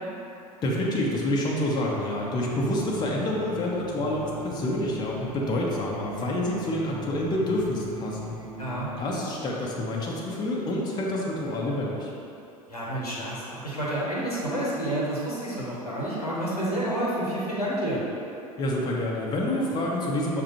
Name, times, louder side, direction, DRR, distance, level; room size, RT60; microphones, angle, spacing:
voice 1, 0.6-8.3 9.0-12.1 18.6-20.4, left 1 dB, 20° left, -3 dB, 0.6 m, -28 dB
sound 1, 2.5-9.2, left 1 dB, 50° right, 0.8 m, -40 dB
voice 2, 8.6-9.2 12.7-18.0, right 1 dB, 85° left, -6 dB, 1.0 m, -29 dB
6.5 x 2.4 x 3.0 m, 2.8 s
figure-of-eight pair, 80°, 19 cm